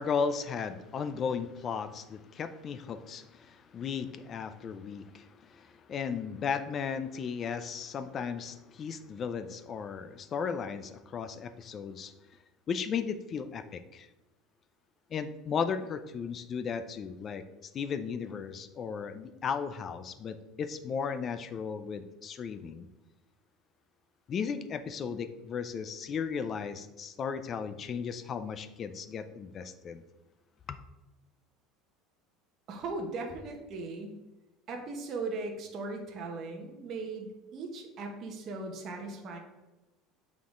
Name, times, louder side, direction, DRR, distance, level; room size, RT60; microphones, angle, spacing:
voice 1, 0.0-12.1 12.7-14.1 15.1-22.9 24.3-30.0 30.7-30.8, left 6 dB, 30° left, 11 dB, 0.4 m, -35 dB
voice 2, 32.7-34.2 34.7-39.4, right 3 dB, 35° right, 2 dB, 0.9 m, -38 dB
8.3 x 3.7 x 3.7 m, 1.1 s
cardioid pair, 160°, 0 cm